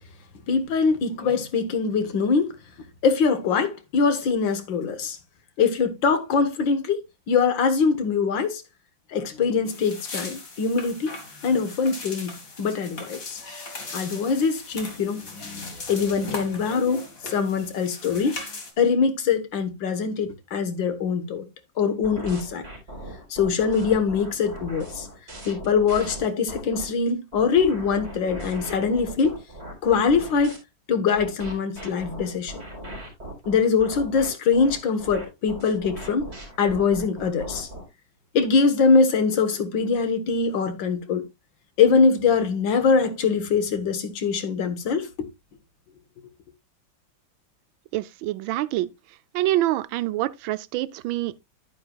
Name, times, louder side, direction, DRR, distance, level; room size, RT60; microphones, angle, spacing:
voice 1, 0.5-2.5 3.0-5.2 5.6-8.6 9.1-11.1 11.4-13.4 13.9-18.4 18.8-21.5 21.8-22.6 23.3-25.1 25.5-29.3 29.8-30.6 30.9-32.6 33.5-36.3 36.6-37.7 38.3-41.2 41.8-45.1, left 5 dB, 75° left, 2.0 m, -23 dB
sound 1, 9.7-18.7, left 2 dB, 45° left, 2.4 m, -38 dB
sound 2, 22.0-26.9 27.3-30.6 31.2-37.9, right 1 dB, 30° right, 3.9 m, -39 dB
voice 2, 47.9-48.9 49.3-51.4, right 15 dB, 85° right, 1.4 m, -26 dB
10.0 x 9.5 x 2.3 m
omnidirectional pair, 2.1 m